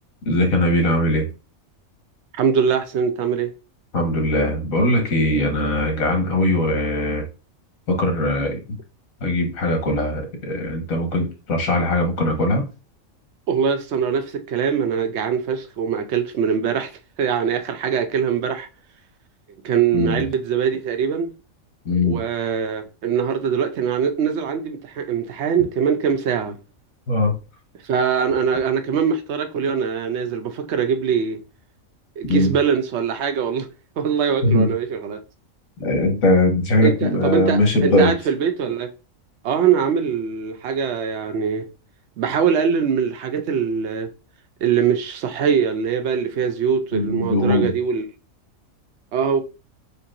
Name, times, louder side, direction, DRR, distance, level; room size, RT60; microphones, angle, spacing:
voice 1, 0.3-1.3 3.9-7.3 7.9-8.8 9.2-12.7 19.9-20.3 21.9-22.2 27.1-27.3 32.2-32.5 34.4-34.7 35.8-38.1 46.9-47.7, left 1 dB, 80° left, 1.7 m, -20 dB
voice 2, 2.4-3.5 13.5-16.9 17.2-18.7 19.6-21.3 22.0-26.6 27.8-31.4 32.2-33.7 34.0-35.2 36.8-38.9 39.4-41.7 42.2-44.1 44.6-48.0 49.1-49.4, right 7 dB, 60° right, 0.9 m, -22 dB
6.5 x 2.8 x 2.5 m
omnidirectional pair, 1.4 m